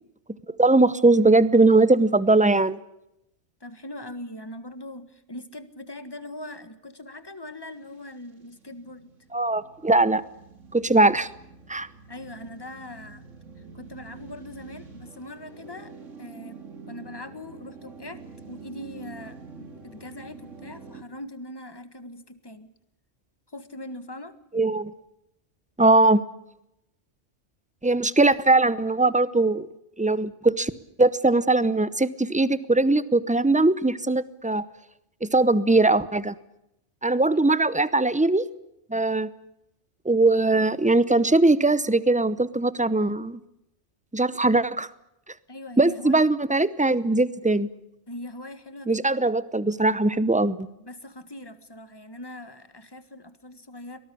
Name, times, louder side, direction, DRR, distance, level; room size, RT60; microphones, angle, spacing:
voice 1, 0.6-2.8 9.3-10.2 10.7-11.3 11.7-11.9 24.5-24.9 25.8-26.2 27.8-29.7 30.0-30.7 31.0-34.6 35.2-36.3 37.0-38.4 38.9-39.3 40.0-43.4 44.1-44.9 45.8-47.7 48.9-50.6, right 2 dB, 10° right, 16 dB, 0.6 m, -20 dB
voice 2, 3.6-9.1 12.1-13.2 13.7-15.9 16.2-16.6 16.9-18.2 18.5-22.7 23.5-24.4 45.5-46.2 48.1-49.3 50.8-54.0, left 1 dB, 20° left, 11 dB, 1.6 m, -41 dB
sound 1, 7.7-21.0, right 5 dB, 85° right, 2.5 m, -46 dB
24.0 x 18.5 x 8.5 m, 0.86 s
omnidirectional pair, 1.3 m